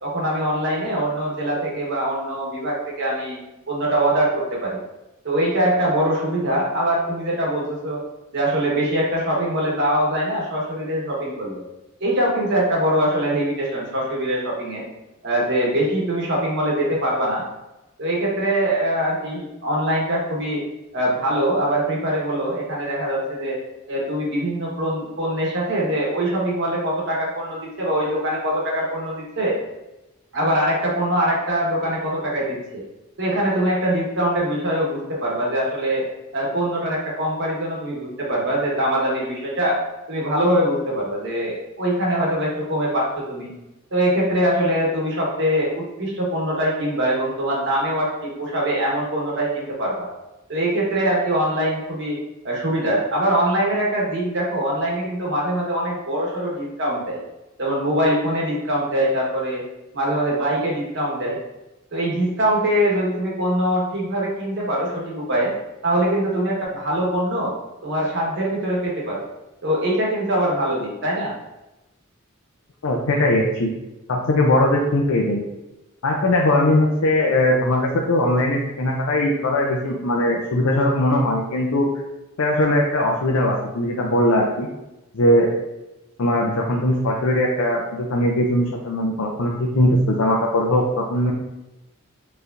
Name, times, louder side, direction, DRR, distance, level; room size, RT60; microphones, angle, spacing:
voice 1, 0.0-3.4 3.7-4.8 5.2-8.0 8.3-11.6 12.0-14.8 15.2-17.4 18.0-20.6 20.9-23.6 23.9-29.6 30.3-32.8 33.2-36.1 36.3-39.8 40.1-43.5 43.9-50.1 50.5-57.2 57.6-59.6 59.9-61.4 61.9-65.5 65.8-67.5 67.8-69.3 69.6-71.3, right 1 dB, 60° right, -4 dB, 1.3 m, -23 dB
voice 2, 72.8-73.7 74.1-75.4 76.0-81.9 82.4-84.7 85.1-85.5 86.2-91.3, left 1 dB, 75° left, -1 dB, 0.6 m, -20 dB
4.6 x 3.2 x 2.6 m, 0.98 s
head